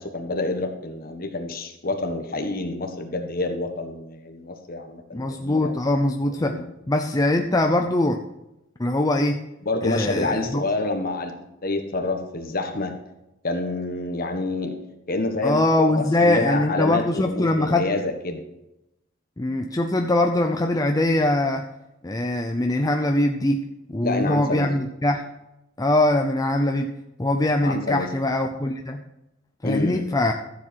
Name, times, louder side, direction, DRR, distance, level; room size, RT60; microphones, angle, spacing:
voice 1, 0.0-5.7 6.4-6.7 9.6-11.3 11.6-13.0 13.4-14.7 15.1-15.6 15.9-18.4 24.0-24.7 27.6-28.1 29.6-30.1, left 2 dB, 45° left, 5 dB, 1.5 m, -28 dB
voice 2, 5.1-6.6 6.9-8.2 8.8-9.4 9.8-10.6 15.4-17.9 19.4-21.7 22.0-23.6 23.9-25.2 25.8-26.9 27.2-29.0 29.6-30.3, left 1 dB, 20° left, 4 dB, 0.6 m, -22 dB
13.5 x 7.5 x 4.6 m, 0.91 s
head